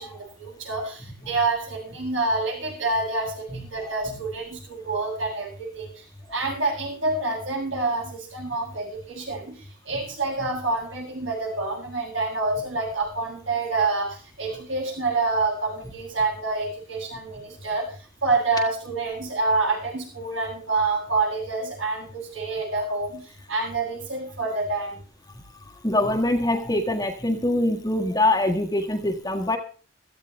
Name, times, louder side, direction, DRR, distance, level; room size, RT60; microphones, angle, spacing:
voice 1, 0.0-5.9 6.3-9.6 9.9-17.9 18.2-25.0, right 3 dB, 75° right, 0 dB, 7.9 m, -27 dB
voice 2, 25.8-29.6, left 1 dB, 20° left, 3 dB, 1.5 m, -23 dB
16.5 x 14.5 x 3.5 m, 0.38 s
head